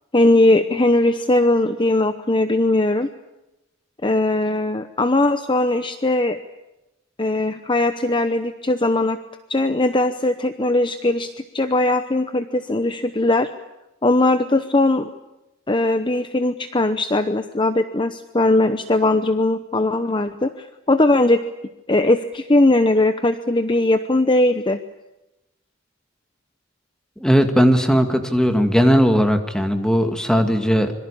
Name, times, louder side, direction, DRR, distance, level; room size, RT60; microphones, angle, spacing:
voice 1, 0.1-3.1 4.0-6.4 7.2-9.2 9.5-13.5 14.0-15.1 15.7-21.4 21.9-24.8, left 2 dB, 25° left, 10 dB, 0.8 m, -19 dB
voice 2, 27.2-30.9, equal, 5° left, 6 dB, 2.2 m, -17 dB
25.5 x 23.0 x 8.6 m, 0.97 s
head